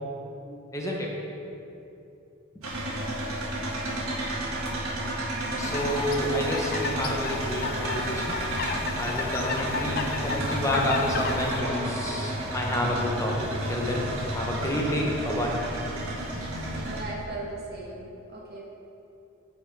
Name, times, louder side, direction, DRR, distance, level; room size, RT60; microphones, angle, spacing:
voice 1, 0.5-1.2 5.6-8.4 8.9-15.6 16.4-16.5, left 1 dB, 15° left, -2 dB, 1.0 m, -29 dB
sound 1, 2.6-17.0, right 1 dB, 85° right, 1.8 m, -31 dB
coot concert, 5.6-11.6, left 4 dB, 40° left, 0.4 m, -33 dB
voice 2, 16.8-18.6, right 2 dB, 45° right, -4 dB, 1.7 m, -38 dB
8.2 x 7.1 x 4.8 m, 2.8 s
head